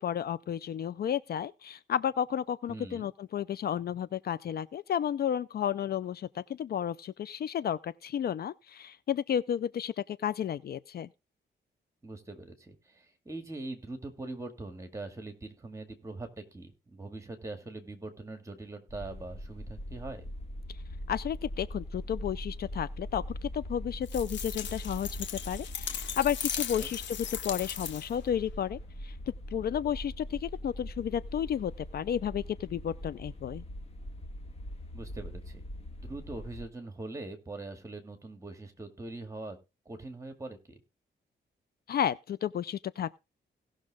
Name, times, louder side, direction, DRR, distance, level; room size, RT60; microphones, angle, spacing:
voice 1, 0.0-11.1 21.1-29.2 29.5-33.6 41.9-43.2, left 9 dB, 55° left, 0.4 m, -32 dB
voice 2, 2.7-3.1 12.0-20.3 26.8-26.9 34.9-35.6 36.0-39.6 39.9-40.8, right 2 dB, 15° right, 2.1 m, -42 dB
sound 1, 18.9-36.7, equal, 35° left, 1.8 m, -42 dB
sound 2, 24.1-28.3, left 8 dB, 80° left, 1.0 m, -37 dB
17.5 x 6.3 x 3.6 m
wide cardioid pair, 155°, 19 cm